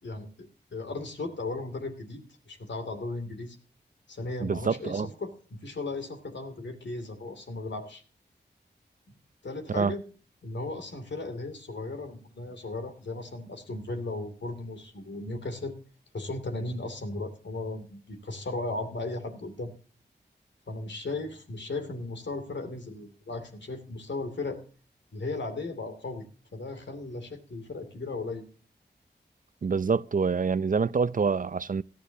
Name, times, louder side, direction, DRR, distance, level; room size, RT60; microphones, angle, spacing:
voice 1, 0.0-3.6 4.1-8.0 9.4-10.0 10.4-15.7 16.1-19.7 20.7-24.6 25.1-26.3 26.5-28.4, left 2 dB, 75° left, 2.6 m, -36 dB
voice 2, 4.4-5.1 9.7-9.9 29.6-31.8, right 5 dB, 45° right, 0.5 m, -26 dB
17.5 x 12.0 x 2.7 m
cardioid pair, 40°, 18 cm